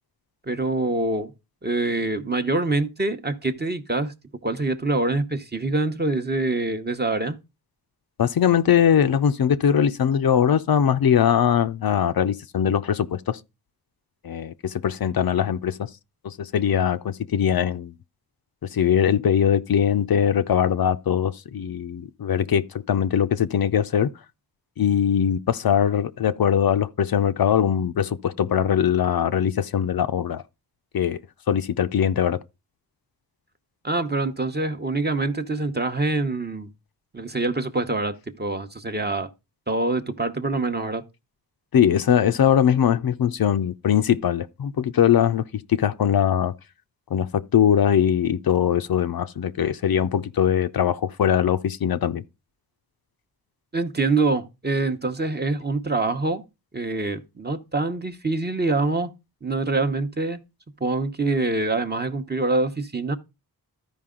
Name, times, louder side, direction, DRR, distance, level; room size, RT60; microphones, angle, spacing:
voice 1, 0.5-1.3 1.6-4.1 4.4-7.4 33.8-36.7 37.1-39.3 39.7-41.0 53.7-56.4 56.7-59.1 59.4-60.4 60.8-63.2, right 3 dB, 25° right, 0.8 m, -25 dB
voice 2, 8.2-13.4 14.2-15.9 16.2-17.9 18.6-24.1 24.8-30.4 30.9-31.2 31.5-32.4 41.7-46.5 47.1-52.2, left 9 dB, 65° left, 0.6 m, -21 dB
13.5 x 5.1 x 3.7 m
wide cardioid pair, 95°, 39 cm